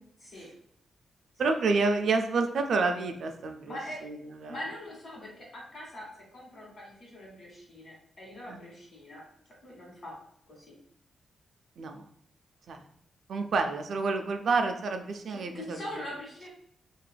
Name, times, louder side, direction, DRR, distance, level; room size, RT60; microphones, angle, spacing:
voice 1, 1.4-3.8 4.0-4.6 8.5-8.6 11.8-12.0 12.7-12.8 13.3-15.8, right 4 dB, 70° right, 6 dB, 0.3 m, -29 dB
voice 2, 3.7-4.1 4.5-6.1 6.3-9.2 9.6-10.2 10.5-10.8 15.3-16.5, left 1 dB, 55° left, -4 dB, 1.4 m, -42 dB
3.2 x 2.3 x 2.2 m, 0.69 s
cardioid pair, 80°, 0 cm